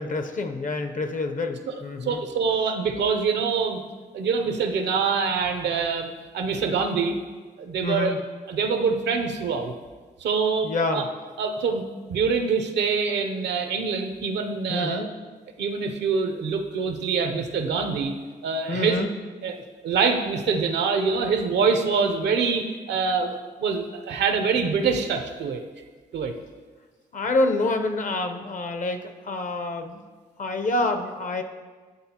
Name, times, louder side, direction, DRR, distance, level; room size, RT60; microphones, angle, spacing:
voice 1, 0.0-2.2 7.8-8.2 10.6-11.0 14.7-15.1 18.7-19.1 27.1-30.0 30.4-31.4, left 2 dB, 50° left, 6 dB, 0.6 m, -27 dB
voice 2, 2.0-3.8 4.1-7.2 7.6-8.2 8.5-9.7 10.2-11.0 11.4-11.8 12.1-15.1 15.6-18.1 18.4-19.0 19.4-25.6 26.1-26.3, right 5 dB, 80° right, 6 dB, 0.6 m, -25 dB
9.6 x 3.8 x 2.8 m, 1.4 s
cardioid pair, 65°, 18 cm